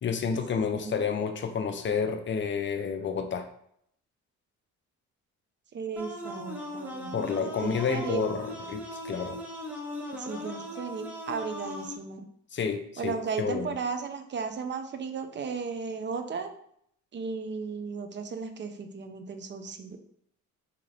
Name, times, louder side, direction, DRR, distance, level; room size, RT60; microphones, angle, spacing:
voice 1, 0.0-3.5 7.1-9.4 12.5-13.7, left 6 dB, 40° left, 6 dB, 0.5 m, -30 dB
voice 2, 5.7-8.2 10.1-12.3 13.0-16.5 17.1-20.0, right 5 dB, 35° right, 7 dB, 0.5 m, -35 dB
sound 1, 6.0-12.0, equal, 5° right, 0.8 m, -39 dB
3.8 x 2.9 x 3.2 m, 0.69 s
cardioid pair, 90°, 30 cm